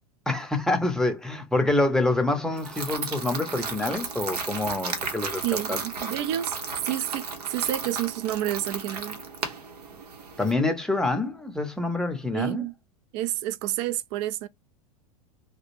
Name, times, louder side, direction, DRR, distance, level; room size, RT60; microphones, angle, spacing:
voice 1, 0.3-5.4 5.7-5.8 10.4-12.6, left 2 dB, 5° left, 0.6 m, -26 dB
sound 1, 2.6-10.5, right 4 dB, 80° right, 0.8 m, -34 dB
voice 2, 5.4-6.6 6.8-9.2 12.3-12.7 13.1-14.5, right 13 dB, 45° right, 0.4 m, -29 dB
2.3 x 2.0 x 3.0 m
hypercardioid pair, 95°, 20 cm